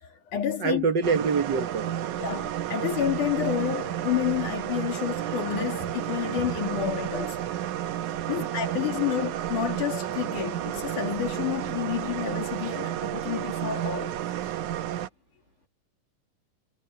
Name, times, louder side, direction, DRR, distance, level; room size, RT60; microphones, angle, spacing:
voice 1, 0.0-0.8 2.2-7.6 8.3-14.2, left 9 dB, 70° left, 4.1 m, -30 dB
voice 2, 0.6-2.1 8.4-8.5, right 5 dB, 50° right, 1.5 m, -26 dB
sound 1, 1.0-15.1, right 11 dB, 70° right, 2.4 m, -31 dB
omnidirectional pair, 3.7 m